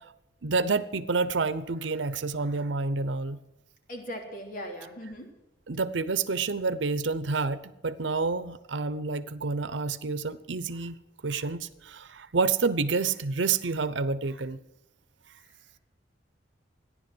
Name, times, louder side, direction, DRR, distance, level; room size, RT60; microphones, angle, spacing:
voice 1, 0.4-3.4 5.7-11.0 11.2-14.6, right 4 dB, 90° right, 14 dB, 0.8 m, -28 dB
voice 2, 3.9-5.3, equal, 50° left, 2 dB, 3.4 m, -39 dB
15.0 x 11.0 x 7.8 m, 0.90 s
head